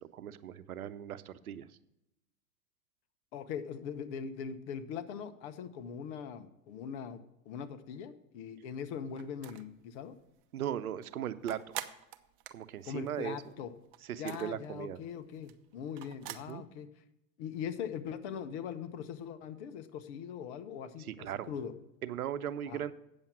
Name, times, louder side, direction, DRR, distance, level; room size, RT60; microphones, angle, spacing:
voice 1, 0.0-1.7 10.5-11.6 12.5-13.4 14.1-15.0 16.5-16.6 21.0-21.5 22.0-22.9, right 10 dB, 85° right, 14 dB, 0.8 m, -38 dB
voice 2, 3.3-10.1 12.9-13.7 14.2-16.9 17.4-21.7 22.7-22.8, left 7 dB, 55° left, 11 dB, 1.0 m, -41 dB
sound 1, 9.2-9.8 10.2-10.3 10.6-13.5 13.8-16.5, right 13 dB, 45° right, 0.8 m, -45 dB
8.7 x 7.1 x 6.1 m, 0.86 s
hypercardioid pair, 110°, 42 cm